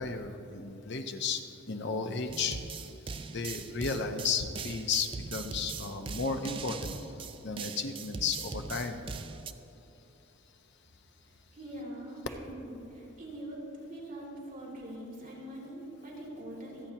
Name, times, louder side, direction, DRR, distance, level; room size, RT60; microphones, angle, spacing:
voice 1, 0.0-2.6 3.1-7.1 7.4-9.0, left 5 dB, 55° left, 6 dB, 0.8 m, -34 dB
sound 1, 2.3-9.5, right 5 dB, 25° right, 0.3 m, -41 dB
voice 2, 11.2-16.9, right 1 dB, 40° right, -5 dB, 2.6 m, -43 dB
25.5 x 8.7 x 2.9 m, 2.9 s
head